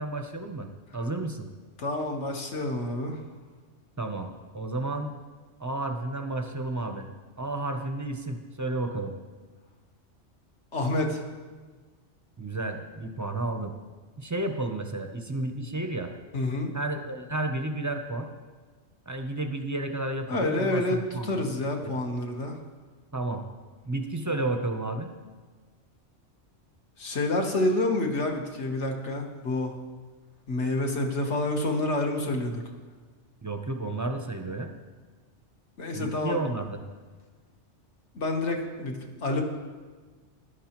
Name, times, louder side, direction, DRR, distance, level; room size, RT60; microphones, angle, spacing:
voice 1, 0.0-1.5 4.0-5.1 5.6-7.1 7.4-9.1 12.4-13.7 14.2-16.1 16.7-18.3 19.1-21.5 21.8-21.9 23.1-23.4 23.8-25.1 33.4-34.7 35.9-36.8, right 2 dB, 20° right, 5 dB, 0.5 m, -32 dB
voice 2, 1.8-3.2 10.7-11.2 16.3-16.7 20.3-22.6 27.0-29.8 30.5-32.6 35.8-36.4 38.1-39.4, left 2 dB, 65° left, 2 dB, 1.5 m, -28 dB
15.0 x 11.0 x 3.0 m, 1.4 s
omnidirectional pair, 1.2 m